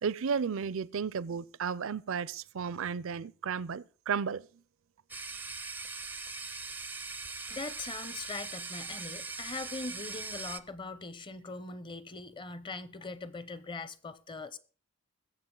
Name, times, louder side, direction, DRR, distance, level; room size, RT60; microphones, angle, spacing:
voice 1, 0.0-4.5, right 6 dB, 65° right, 0.5 m, -33 dB
sound 1, 5.1-10.6, right 4 dB, 10° right, 0.5 m, -41 dB
voice 2, 7.4-14.6, left 3 dB, 25° left, 0.7 m, -41 dB
21.0 x 7.7 x 3.9 m
head